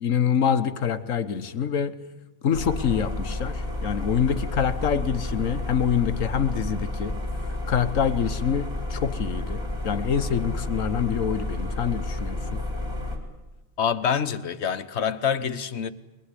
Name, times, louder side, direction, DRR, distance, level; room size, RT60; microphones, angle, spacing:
voice 1, 0.0-1.9 2.4-7.1 7.7-12.6, left 8 dB, 85° left, 1.5 m, -26 dB
sound 1, 2.5-13.2, left 1 dB, 20° right, 4.0 m, -31 dB
voice 2, 13.8-15.9, left 7 dB, 60° left, 1.3 m, -26 dB
22.5 x 21.0 x 9.9 m
omnidirectional pair, 1.3 m